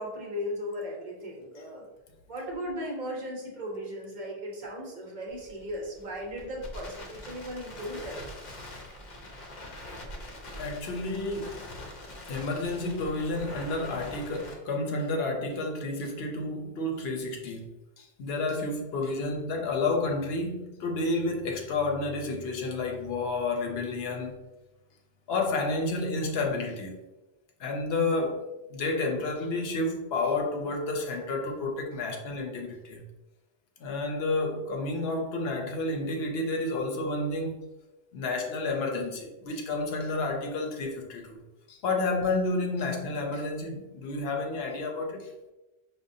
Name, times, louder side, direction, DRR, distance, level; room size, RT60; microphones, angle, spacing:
voice 1, 0.0-1.8 2.3-8.3, equal, 50° right, 0.9 m, -37 dB
Crackle, 5.3-14.5, left 1 dB, 50° left, 0.7 m, -43 dB
voice 2, 10.6-11.6 12.3-17.7 18.0-24.4 25.3-27.0 27.6-28.4 28.7-33.0 33.8-37.7 38.1-41.4 41.7-45.3, left 2 dB, 80° left, 0.9 m, -30 dB
5.1 x 2.1 x 2.6 m
omnidirectional pair, 1.0 m